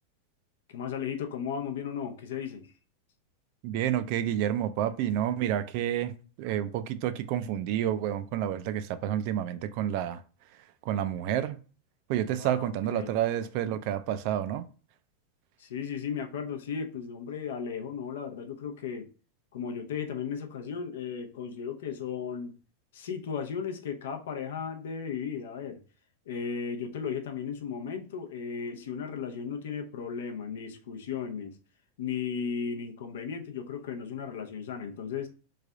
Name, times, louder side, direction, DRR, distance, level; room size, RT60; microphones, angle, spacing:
voice 1, 0.7-2.7 12.3-13.1 15.6-19.1 19.5-22.6 22.9-25.8 26.3-31.6 32.0-35.3, left 7 dB, 80° left, 0.6 m, -35 dB
voice 2, 3.6-6.1 6.4-10.2 10.8-11.6 12.1-14.6, right 11 dB, 50° right, 0.3 m, -29 dB
3.2 x 2.3 x 3.7 m
supercardioid pair, 150°, 0 cm